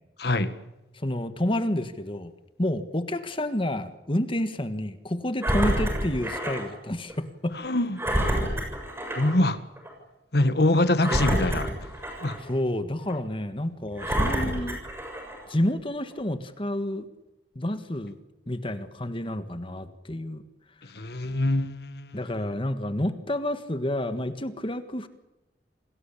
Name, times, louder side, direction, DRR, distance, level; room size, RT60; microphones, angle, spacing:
voice 1, 0.2-0.5 7.5-8.0 9.2-9.6 10.3-11.7 12.2-12.4 20.8-22.2, left 1 dB, 65° left, 1.6 m, -24 dB
voice 2, 0.9-2.3 2.6-7.5 11.1-11.2 12.4-14.8 15.5-17.1 17.6-18.2 18.5-20.4 22.1-25.1, left 1 dB, 30° left, 1.6 m, -29 dB
Engine, 5.4-6.7 7.1-7.2 8.0-9.4 9.8-9.9 11.0-12.5 13.1-13.2 14.0-15.4 16.1-16.2, equal, 15° right, 7.1 m, -28 dB
28.0 x 19.0 x 8.6 m
head